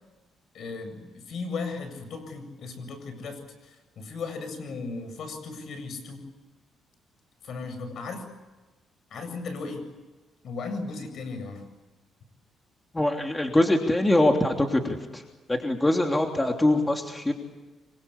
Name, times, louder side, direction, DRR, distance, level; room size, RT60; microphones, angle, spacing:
voice 1, 0.5-6.2 7.4-8.2 9.1-9.8 10.4-11.6, left 4 dB, 65° left, 8 dB, 7.8 m, -36 dB
voice 2, 12.9-15.2 15.5-17.3, left 1 dB, 15° left, 3 dB, 3.1 m, -23 dB
26.0 x 24.0 x 8.5 m, 1.2 s
cardioid pair, 90°, 0 cm